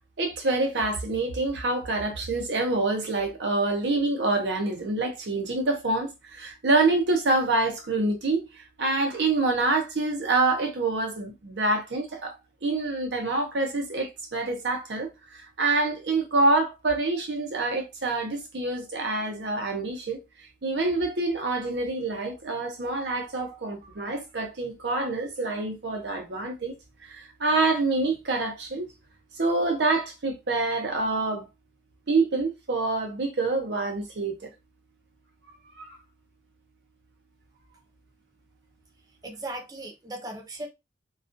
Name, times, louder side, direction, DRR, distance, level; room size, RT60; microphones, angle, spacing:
voice 1, 0.2-12.3 12.6-20.2 20.6-26.7 27.0-28.9 29.4-31.4 32.1-34.5 35.8-36.0, right 3 dB, 70° right, 0.7 m, -26 dB
voice 2, 39.2-40.7, right 1 dB, 20° right, 0.5 m, -37 dB
2.3 x 2.3 x 2.5 m
head